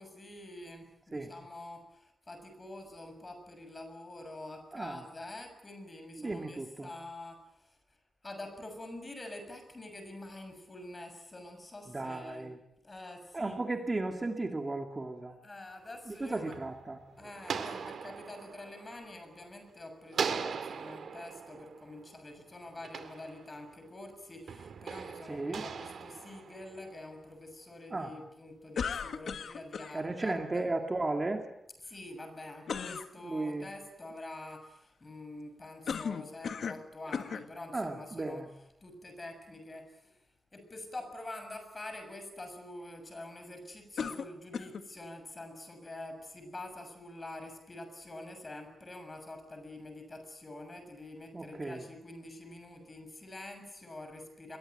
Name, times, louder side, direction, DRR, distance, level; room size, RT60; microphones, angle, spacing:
voice 1, 0.0-7.8 8.2-12.5 12.8-13.6 15.4-16.6 17.2-30.7 31.8-40.2 40.5-54.6, left 2 dB, 25° left, 7 dB, 6.6 m, -46 dB
voice 2, 4.7-5.0 6.2-6.9 11.9-12.6 13.3-15.4 16.1-17.0 25.2-25.7 27.9-28.1 29.9-31.4 33.2-33.7 37.7-38.5 51.3-51.8, right 2 dB, 25° right, 4 dB, 2.2 m, -35 dB
sound 1, 15.9-19.7 20.1-23.9 24.5-27.1, right 6 dB, 90° right, 2.4 m, -40 dB
sound 2, 28.8-29.9 32.7-33.1 35.9-36.9 37.1-37.5 38.3-38.4 44.0-44.9, left 6 dB, 80° left, 1.6 m, -36 dB
27.5 x 22.5 x 9.2 m, 0.81 s
wide cardioid pair, 175°, 0 cm